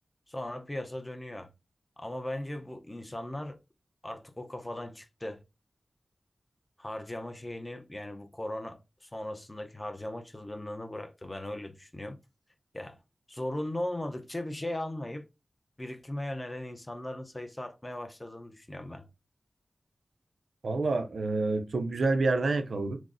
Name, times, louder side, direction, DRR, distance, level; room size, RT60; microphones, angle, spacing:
voice 1, 0.3-1.5 2.0-3.6 4.0-5.4 6.8-12.2 12.7-13.0 13.3-15.3 15.8-19.1, left 1 dB, 25° left, 0.5 m, -38 dB
voice 2, 20.6-23.0, right 3 dB, 85° right, 0.5 m, -28 dB
6.0 x 2.0 x 2.5 m
wide cardioid pair, 60°, 0 cm